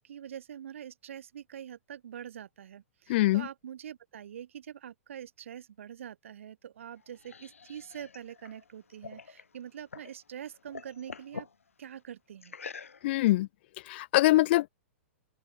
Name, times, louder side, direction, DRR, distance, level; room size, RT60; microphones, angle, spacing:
voice 1, 0.0-11.5 11.8-12.6, right 9 dB, 70° right, 5.7 m, -44 dB
voice 2, 3.1-3.5 13.0-13.5 13.9-14.7, left 17 dB, 55° left, 0.5 m, -23 dB
sound 1, 6.8-10.2 10.5-11.6 12.4-13.3, left 5 dB, 85° left, 1.7 m, -46 dB
open air
hypercardioid pair, 110°, 7 cm